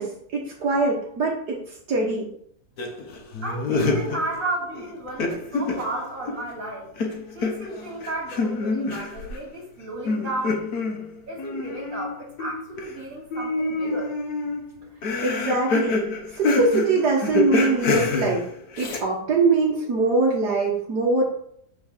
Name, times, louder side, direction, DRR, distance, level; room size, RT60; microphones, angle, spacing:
voice 1, 0.0-1.6 1.9-2.3 15.2-16.1 16.4-18.5 18.8-21.2, right 3 dB, 80° right, -3 dB, 1.9 m, -22 dB
sound 1, 2.8-4.5 4.7-6.6 7.0-9.4 10.0-13.0 13.3-19.0, left 3 dB, 65° left, 1.7 m, -27 dB
voice 2, 3.4-6.9 7.3-10.6 11.3-14.1, right 2 dB, 55° right, -1 dB, 2.9 m, -33 dB
5.8 x 4.7 x 6.6 m, 0.68 s
omnidirectional pair, 1.7 m